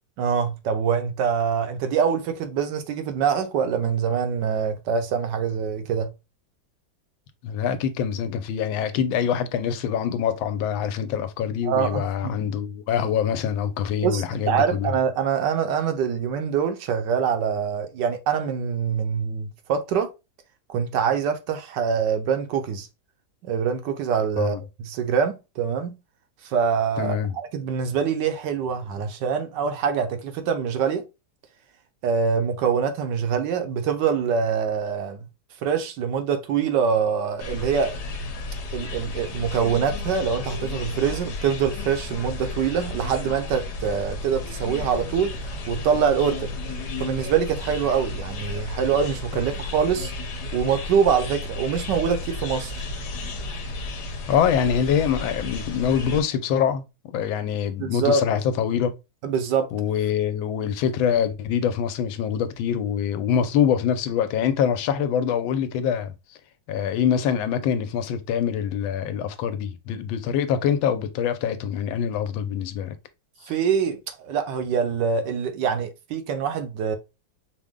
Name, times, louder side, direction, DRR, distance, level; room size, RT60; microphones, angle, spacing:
voice 1, 0.2-6.1 11.6-12.3 14.0-20.1 20.7-22.9 23.4-26.0 26.4-31.0 32.0-35.3 35.6-37.9 38.7-46.5 47.0-50.1 50.5-52.9 57.8-58.2 59.2-59.7 73.5-77.0, right 7 dB, 70° right, 1.2 m, -24 dB
voice 2, 7.4-14.9 24.4-24.6 27.0-27.4 54.3-58.9 59.7-66.1 66.7-72.9 73.4-73.5, left 8 dB, 85° left, 1.4 m, -24 dB
sound 1, 37.4-56.2, left 2 dB, 65° left, 1.3 m, -33 dB
5.0 x 2.1 x 3.6 m
omnidirectional pair, 2.1 m